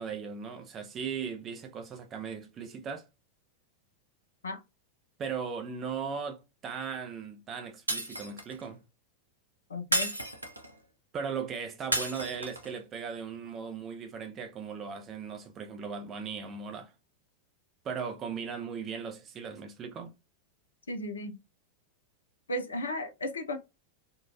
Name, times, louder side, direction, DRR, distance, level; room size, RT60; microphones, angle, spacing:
voice 1, 0.0-3.1 5.2-8.8 11.1-16.9 17.8-20.1, right 6 dB, 30° right, 0.8 m, -38 dB
Shatter, 7.9-8.6 9.9-10.7 11.9-12.7, right 1 dB, 85° right, 0.6 m, -31 dB
voice 2, 9.7-10.1 20.9-21.4 22.5-23.6, left 1 dB, 70° left, 0.6 m, -35 dB
3.8 x 2.5 x 2.4 m
figure-of-eight pair, 90°, 0 cm